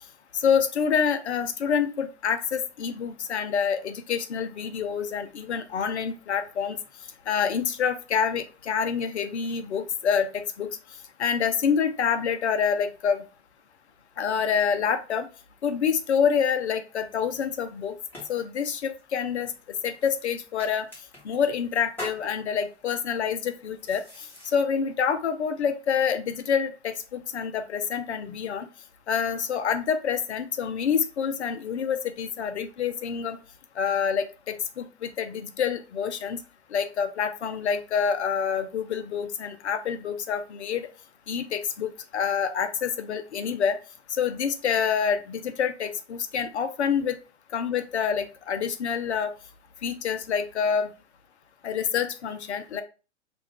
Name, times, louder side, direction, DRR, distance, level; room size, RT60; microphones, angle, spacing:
voice 1, 0.3-6.8 7.3-10.7 11.2-13.2 14.2-15.3 15.6-17.9 18.3-19.5 19.8-20.8 21.2-24.0 24.5-28.7 29.1-33.4 33.8-36.4 36.7-40.9 41.3-43.8 44.2-47.2 47.5-49.3 49.8-50.9 51.6-52.8, left 7 dB, 70° left, 9 dB, 0.6 m, -27 dB
sound 1, 17.0-24.6, equal, 5° left, 1.0 m, -46 dB
2.4 x 2.2 x 3.5 m, 0.34 s
figure-of-eight pair, 120°, 35 cm